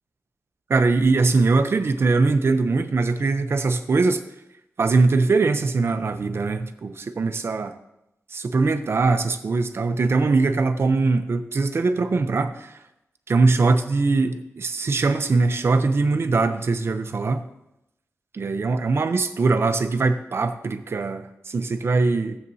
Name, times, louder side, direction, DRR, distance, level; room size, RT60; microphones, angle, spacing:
voice 1, 0.7-4.2 4.8-7.7 8.3-12.7 13.3-17.4 18.3-22.4, right 3 dB, 55° right, 9 dB, 0.7 m, -21 dB
15.0 x 8.1 x 2.8 m, 0.87 s
wide cardioid pair, 130°, 5 cm